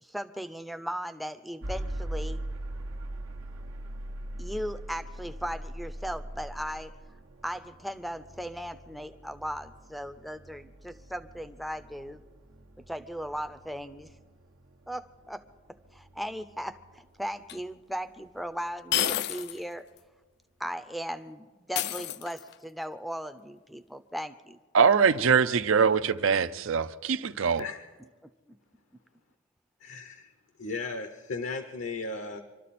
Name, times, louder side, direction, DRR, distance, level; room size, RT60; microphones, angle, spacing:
voice 1, 0.0-2.4 4.4-6.9 7.4-12.2 12.9-14.1 14.9-15.4 15.9-19.8 20.6-24.6 28.2-28.6, equal, ahead, 0.5 m, -37 dB
sound 1, 1.6-17.6, right 1 dB, 90° right, 1.1 m, -41 dB
sound 2, 17.5-17.6 18.9-19.6 20.0-20.1 21.7-22.6, left 11 dB, 55° left, 0.4 m, -30 dB
voice 2, 24.7-27.7, right 6 dB, 70° right, 0.5 m, -23 dB
voice 3, 29.8-30.3 30.6-32.4, left 3 dB, 70° left, 0.8 m, -36 dB
25.0 x 13.0 x 4.2 m
head